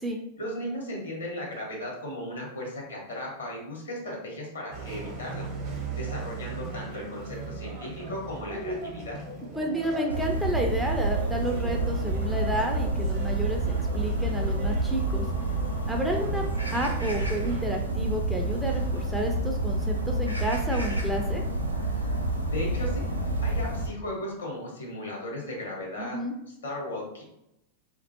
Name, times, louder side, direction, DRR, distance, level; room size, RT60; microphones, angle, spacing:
voice 1, 0.4-5.5 6.0-9.2 22.4-23.0 23.4-26.2 26.5-27.2, left 1 dB, 70° left, -2 dB, 0.9 m, -36 dB
sound 1, 4.7-17.6, right 3 dB, 45° right, 0.7 m, -39 dB
voice 2, 9.6-15.3 15.8-16.4 16.7-21.4 26.0-26.3, right 1 dB, 5° right, 1 dB, 0.3 m, -31 dB
sound 2, 10.1-23.9, right 2 dB, 90° right, 0.3 m, -28 dB
2.2 x 2.0 x 2.8 m, 0.83 s
figure-of-eight pair, 90°, 0 cm